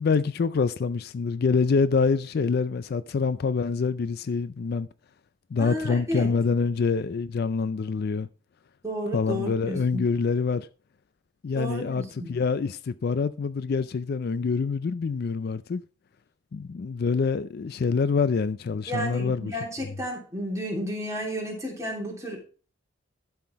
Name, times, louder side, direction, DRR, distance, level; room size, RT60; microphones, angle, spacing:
voice 1, 0.0-4.9 5.5-8.3 9.1-10.7 11.4-15.8 16.5-19.6, left 5 dB, 50° left, 0.4 m, -26 dB
voice 2, 5.6-6.3 8.8-10.1 11.5-12.3 18.9-22.4, equal, 15° right, 3.1 m, -32 dB
11.5 x 5.7 x 4.5 m
head